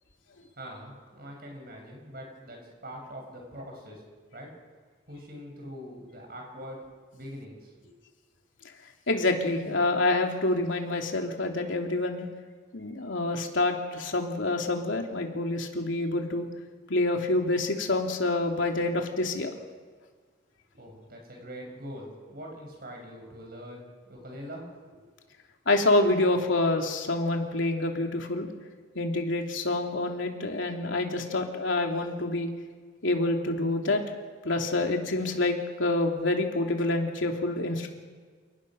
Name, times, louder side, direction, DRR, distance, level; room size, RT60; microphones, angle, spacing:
voice 1, 0.6-4.0 4.3-4.5 5.1-6.8 7.1-7.9 20.7-25.0, equal, 50° right, 1 dB, 7.2 m, -43 dB
voice 2, 9.1-12.3 12.7-16.5 16.9-19.5 25.7-28.5 28.9-32.5 33.0-34.0 34.4-37.9, left 2 dB, 80° left, 2 dB, 2.9 m, -27 dB
28.5 x 19.0 x 6.4 m, 1.5 s
head